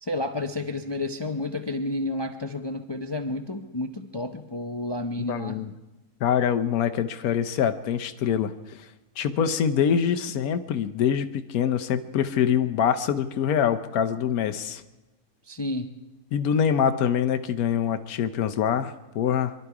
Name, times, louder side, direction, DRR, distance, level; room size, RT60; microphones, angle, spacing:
voice 1, 0.0-5.6 15.5-16.0, left 2 dB, 30° left, 6 dB, 0.4 m, -31 dB
voice 2, 5.3-5.7 6.2-8.8 9.2-14.8 16.3-19.5, left 8 dB, 90° left, 8 dB, 1.2 m, -24 dB
25.0 x 12.0 x 4.8 m, 1.1 s
omnidirectional pair, 1.5 m